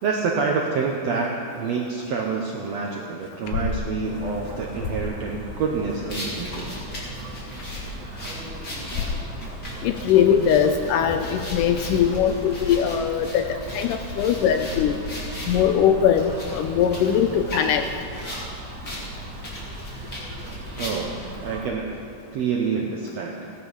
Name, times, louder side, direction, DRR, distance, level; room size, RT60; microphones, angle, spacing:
voice 1, 0.0-6.7 20.8-21.9 22.3-23.4, right 5 dB, 75° right, 0 dB, 1.5 m, -27 dB
sound 1, 3.2-3.8 4.1-4.2 4.6-5.1 6.3-6.9 7.4-8.1 8.8-9.3 10.1-10.7 11.1-15.9 17.2-17.5 18.1-18.3, left 5 dB, 65° left, 2.1 m, -34 dB
sound 2, 4.0-21.6, right 1 dB, 40° right, 2.3 m, -37 dB
sound 3, 6.1-15.6 16.1-18.5 18.8-19.0 19.3-21.3, left 1 dB, 30° left, 2.7 m, -38 dB
voice 2, 9.8-15.0 15.5-17.9, left 8 dB, 80° left, 7 dB, 2.0 m, -21 dB
16.5 x 10.0 x 5.5 m, 2.4 s
omnidirectional pair, 4.1 m